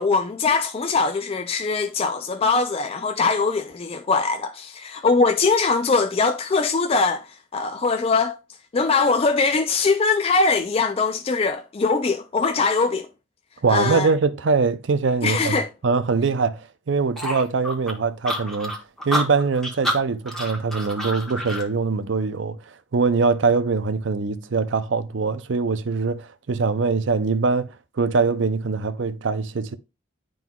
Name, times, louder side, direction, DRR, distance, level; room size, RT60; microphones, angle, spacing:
voice 1, 0.0-8.4 8.7-13.1 13.7-14.1 15.2-15.7, left 4 dB, 30° left, 0.4 m, -22 dB
voice 2, 13.6-18.8 19.0-22.6 22.9-29.7, right 4 dB, 70° right, 0.5 m, -23 dB
sound 1, 17.2-21.7, equal, ahead, 1.1 m, -28 dB
11.0 x 3.9 x 2.3 m
head